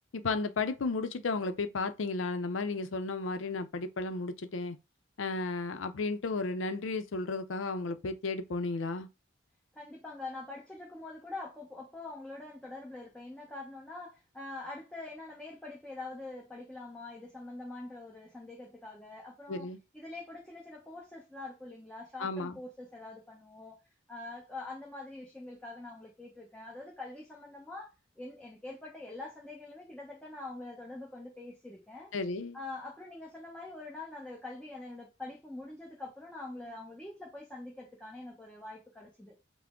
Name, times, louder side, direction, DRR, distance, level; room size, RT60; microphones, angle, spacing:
voice 1, 0.1-4.8 5.2-9.1 19.5-19.8 22.2-22.5 32.1-32.6, left 3 dB, 80° left, 0.5 m, -33 dB
voice 2, 9.7-19.7 19.9-23.8 24.1-32.1 32.5-39.4, left 2 dB, 5° left, 0.8 m, -44 dB
5.8 x 2.1 x 3.6 m
head